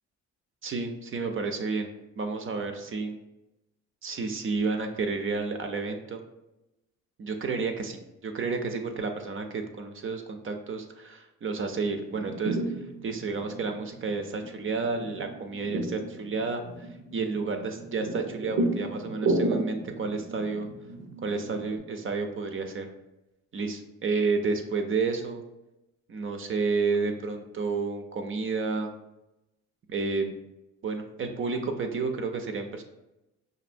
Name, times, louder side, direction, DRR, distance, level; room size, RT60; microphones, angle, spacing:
voice 1, 0.6-1.9 2.2-3.2 4.0-6.2 7.2-20.7 21.2-22.9 23.5-25.4 26.1-28.9 29.9-30.3 30.8-32.8, right 4 dB, 45° right, 6 dB, 0.5 m, -31 dB
sound 1, 11.9-21.8, right 2 dB, 80° right, 0.8 m, -33 dB
5.0 x 2.6 x 2.6 m, 0.95 s
cardioid pair, 90°, 30 cm